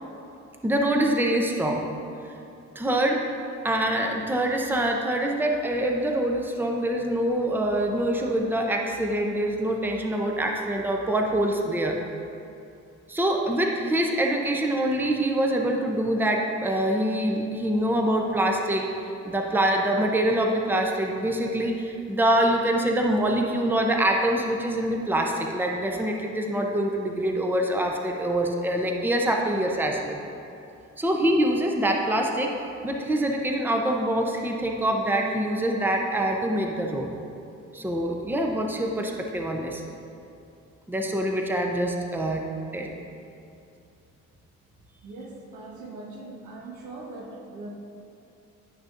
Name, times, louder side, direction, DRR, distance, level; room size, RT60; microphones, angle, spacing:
voice 1, 0.6-1.8 2.8-3.2 3.6-12.0 13.1-18.9 19.2-30.2 31.0-32.5 32.8-37.1 37.7-39.8 40.9-42.4 42.7-42.9, right 1 dB, 5° right, 1 dB, 0.7 m, -25 dB
voice 2, 45.0-47.7, right 2 dB, 85° right, -1 dB, 1.3 m, -41 dB
10.5 x 6.1 x 2.6 m, 2.7 s
cardioid pair, 90°, 30 cm